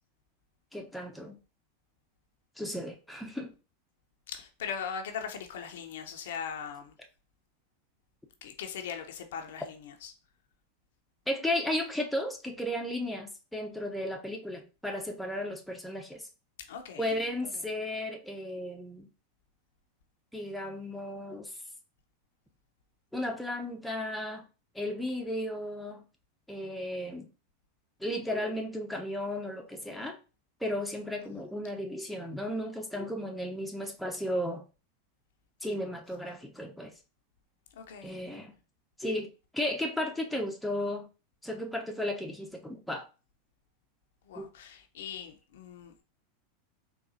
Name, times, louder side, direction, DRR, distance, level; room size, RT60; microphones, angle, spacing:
voice 1, 0.7-1.4 2.6-3.5 11.3-16.2 17.0-19.1 20.3-21.6 23.1-24.4 24.7-26.0 26.5-27.3 28.0-30.2 30.6-34.6 35.6-36.9 38.0-38.5 39.0-41.1 41.4-43.1 44.3-44.5, left 1 dB, ahead, 0.6 m, -34 dB
voice 2, 4.3-6.9 8.4-10.1 16.6-17.2 17.5-17.7 37.7-38.2 44.2-46.0, left 7 dB, 75° left, 0.5 m, -40 dB
3.9 x 2.3 x 2.6 m
hypercardioid pair, 100°, 0 cm